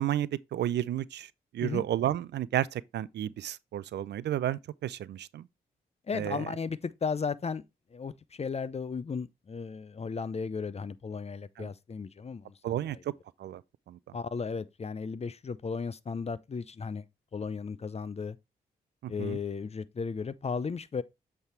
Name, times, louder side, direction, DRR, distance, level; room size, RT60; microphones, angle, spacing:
voice 1, 0.0-5.5 6.1-6.5 11.6-11.7 12.6-13.1 13.4-13.6 13.9-14.2 19.0-19.4, right 12 dB, 65° right, 0.4 m, -32 dB
voice 2, 6.1-7.6 7.9-12.5 14.1-17.0 17.3-18.4 19.1-21.0, left 5 dB, 35° left, 0.6 m, -35 dB
8.1 x 3.5 x 4.4 m
hypercardioid pair, 40°, 19 cm